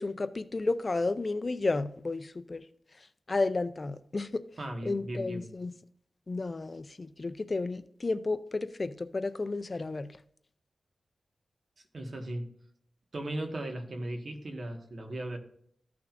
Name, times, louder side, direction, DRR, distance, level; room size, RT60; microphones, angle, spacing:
voice 1, 0.0-2.6 3.3-4.4 4.8-5.7 6.3-10.1, left 3 dB, 40° left, 0.4 m, -32 dB
voice 2, 4.6-5.5 11.9-12.5 13.1-15.4, right 1 dB, 55° right, 1.6 m, -37 dB
15.0 x 6.0 x 2.6 m
wide cardioid pair, 80°, 0 cm